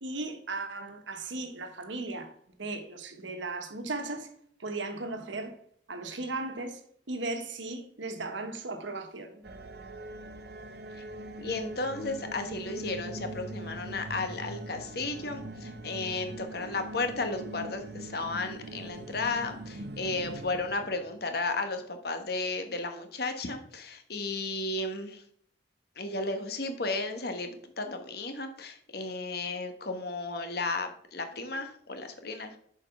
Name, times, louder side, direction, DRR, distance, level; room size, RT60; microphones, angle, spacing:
voice 1, 0.0-2.3 2.6-4.3 4.6-5.6 5.9-6.8 7.1-9.4, right 2 dB, 85° right, 1.2 m, -36 dB
sound 1, 9.4-21.5, right 1 dB, 60° right, 0.7 m, -42 dB
voice 2, 11.4-25.2 26.0-32.5, left 3 dB, 55° left, 1.1 m, -34 dB
6.6 x 5.1 x 5.7 m
head